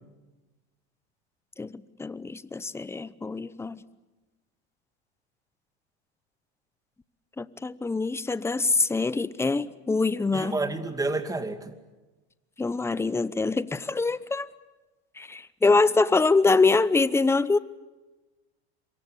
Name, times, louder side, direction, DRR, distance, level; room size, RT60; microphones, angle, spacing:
voice 1, 1.6-3.8 7.4-10.6 12.6-14.5 15.2-17.6, left 3 dB, 10° left, 17 dB, 0.8 m, -24 dB
voice 2, 10.3-11.8, right 3 dB, 10° right, 9 dB, 2.4 m, -30 dB
27.5 x 23.5 x 8.3 m, 1.1 s
supercardioid pair, 115°, 33 cm